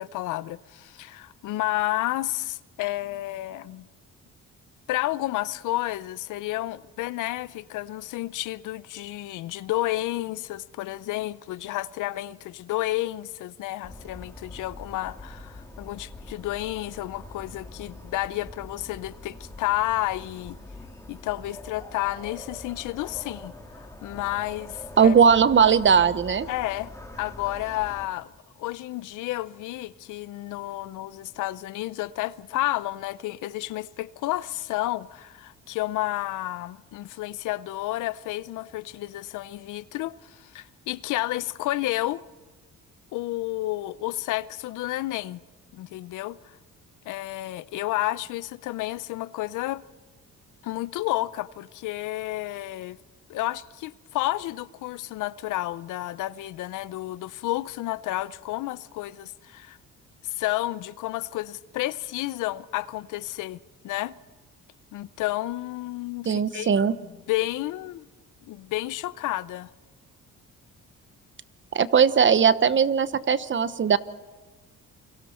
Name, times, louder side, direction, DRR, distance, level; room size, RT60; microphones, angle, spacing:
voice 1, 0.0-3.9 4.9-20.6 21.1-25.1 26.5-26.9 27.2-28.3 28.6-42.2 43.1-45.4 45.7-46.6 47.1-49.8 50.6-53.0 53.3-59.8 60.2-63.6 63.8-64.1 64.9-66.7 67.0-68.1 68.5-69.7, left 16 dB, 85° left, 0.7 m, -31 dB
sound 1, 13.8-28.1, left 2 dB, 10° left, 2.8 m, -44 dB
voice 2, 25.0-26.5 66.2-66.9 71.7-74.0, right 7 dB, 40° right, 1.0 m, -19 dB
29.0 x 23.0 x 4.4 m
cardioid pair, 90°, 30 cm